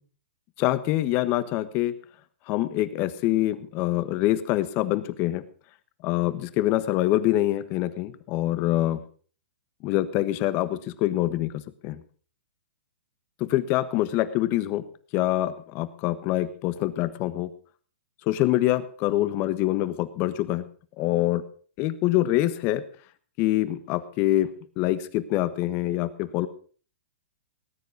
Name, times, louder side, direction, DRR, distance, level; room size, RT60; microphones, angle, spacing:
voice 1, 0.6-2.0 2.5-5.4 6.0-9.0 9.8-12.0 13.4-14.8 15.1-17.5 18.3-20.7 21.0-21.4 21.8-22.8 23.4-26.5, left 15 dB, 35° left, 14 dB, 1.3 m, -25 dB
18.5 x 9.5 x 5.3 m, 0.43 s
hypercardioid pair, 140°, 6 cm